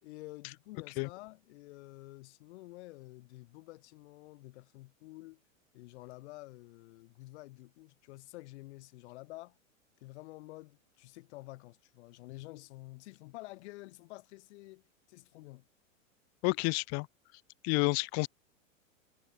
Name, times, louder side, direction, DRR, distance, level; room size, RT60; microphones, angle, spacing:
voice 1, 0.0-5.4 5.7-9.6 10.0-14.8 15.1-15.6, left 20 dB, 55° left, 3.1 m, -50 dB
voice 2, 16.4-17.1 17.6-18.3, left 33 dB, 40° left, 1.0 m, -29 dB
hypercardioid pair, 110°, 40 cm